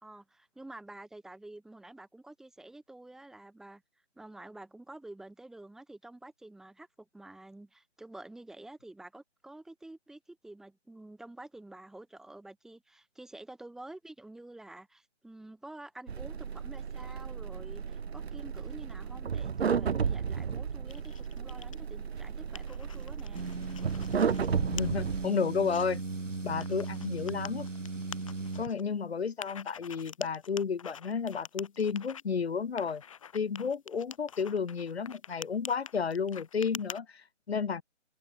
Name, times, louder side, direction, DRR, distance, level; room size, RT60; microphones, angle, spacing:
voice 1, 0.0-3.8 4.2-23.5, right 2 dB, ahead, 2.4 m, -49 dB
sound 1, 16.1-25.3, right 6 dB, 55° right, 0.9 m, -33 dB
sound 2, 20.9-21.8 22.2-24.5 24.8-24.9 25.4-25.8 26.6-28.8 29.4-32.2 32.8-37.0, left 8 dB, 25° left, 1.3 m, -46 dB
sound 3, 23.3-28.7, right 3 dB, 85° right, 5.2 m, -37 dB
voice 2, 24.5-26.0 26.4-27.7 28.5-33.0 33.3-37.8, left 6 dB, 55° left, 1.6 m, -32 dB
figure-of-eight pair, 160°, 37 cm